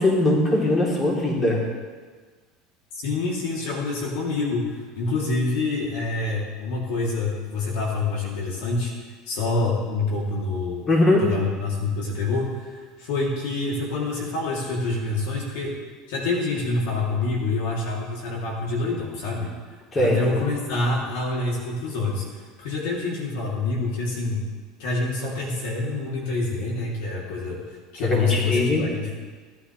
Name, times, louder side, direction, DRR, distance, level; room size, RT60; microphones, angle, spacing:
voice 1, 0.0-1.6 10.9-11.2 19.9-20.4 28.0-28.8, left 1 dB, 25° left, -3 dB, 3.2 m, -21 dB
voice 2, 3.0-8.9 9.3-10.9 11.2-15.8 16.1-19.5 19.9-24.4 24.8-27.6 27.9-29.2, left 3 dB, 75° left, -3 dB, 2.9 m, -26 dB
17.5 x 9.8 x 3.3 m, 1.5 s
supercardioid pair, 115°, 0 cm